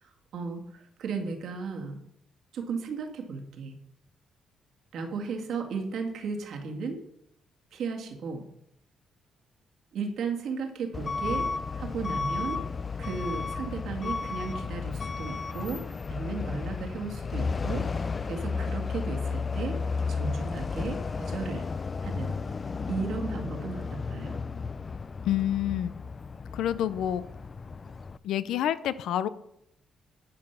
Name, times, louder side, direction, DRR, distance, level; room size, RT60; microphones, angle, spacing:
voice 1, 0.0-2.0 2.5-3.8 4.9-7.0 7.7-8.5 9.9-11.5 11.8-12.6 13.0-17.9 18.2-19.8 20.1-21.7 22.0-22.4 22.9-24.4, right 4 dB, 75° right, 3 dB, 1.8 m, -35 dB
Truck / Alarm, 10.9-28.2, left 4 dB, 35° left, 0.3 m, -33 dB
voice 2, 25.2-25.9 26.5-27.2 28.2-29.3, left 11 dB, 85° left, 15 dB, 0.5 m, -28 dB
11.0 x 5.4 x 5.8 m, 0.76 s
cardioid pair, 105°, 0 cm